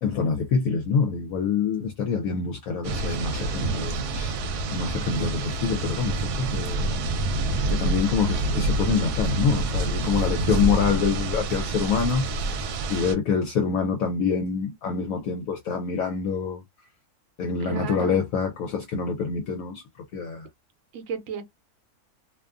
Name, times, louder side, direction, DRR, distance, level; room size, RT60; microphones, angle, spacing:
voice 1, 0.0-4.3 4.7-6.9 7.7-12.3 12.9-16.6 17.4-19.8 20.1-20.5, left 6 dB, 70° left, 0.9 m, -26 dB
sound 1, 2.8-13.2, right 2 dB, 85° right, 1.1 m, -27 dB
voice 2, 17.7-18.2 20.9-21.4, right 6 dB, 65° right, 0.9 m, -33 dB
2.6 x 2.4 x 2.3 m
omnidirectional pair, 1.6 m